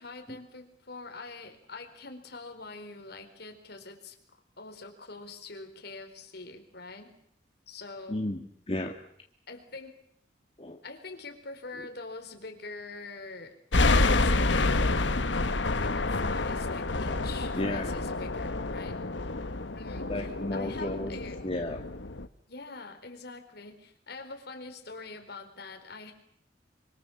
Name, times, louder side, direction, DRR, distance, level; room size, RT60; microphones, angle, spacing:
voice 1, 0.0-7.1 7.7-8.2 9.5-10.0 10.8-13.5 14.0-15.0 15.7-19.0 19.7-21.4 22.5-26.1, left 3 dB, 60° left, 5 dB, 4.4 m, -44 dB
voice 2, 8.1-8.9 10.6-10.8 11.8-11.9 17.6-18.0 20.1-21.1 21.4-21.8, left 1 dB, 30° left, 2 dB, 1.9 m, -33 dB
sound 1, 13.7-22.3, left 2 dB, 75° left, 1.3 m, -28 dB
25.5 x 25.0 x 7.2 m, 0.72 s
head